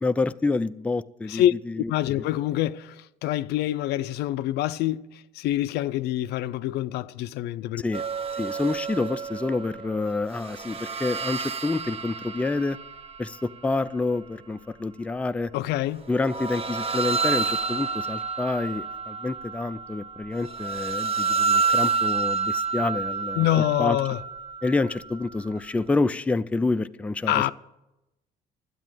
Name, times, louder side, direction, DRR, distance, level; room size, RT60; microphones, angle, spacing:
voice 1, 0.0-2.2 7.8-8.0 8.4-12.8 13.2-15.5 16.1-23.4 23.8-24.0 24.6-27.5, left 3 dB, 10° left, 0.4 m, -28 dB
voice 2, 1.3-3.0 3.2-5.0 5.3-7.8 15.5-16.0 23.4-24.2 27.3-27.5, left 13 dB, 80° left, 0.4 m, -25 dB
sound 1, 7.9-10.1 10.4-13.5 16.2-25.6, right 5 dB, 35° right, 0.6 m, -29 dB
12.5 x 8.3 x 7.6 m
cardioid pair, 110°, 17 cm